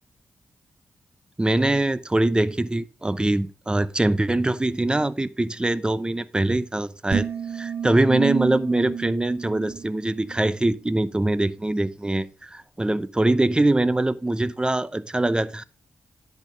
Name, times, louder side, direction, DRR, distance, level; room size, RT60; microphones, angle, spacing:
voice 1, 1.4-7.3 7.5-15.6, right 2 dB, 20° right, 0.7 m, -23 dB
sound 1, 7.1-10.5, right 8 dB, 55° right, 1.2 m, -30 dB
10.5 x 4.3 x 5.2 m
cardioid pair, 55°, 5 cm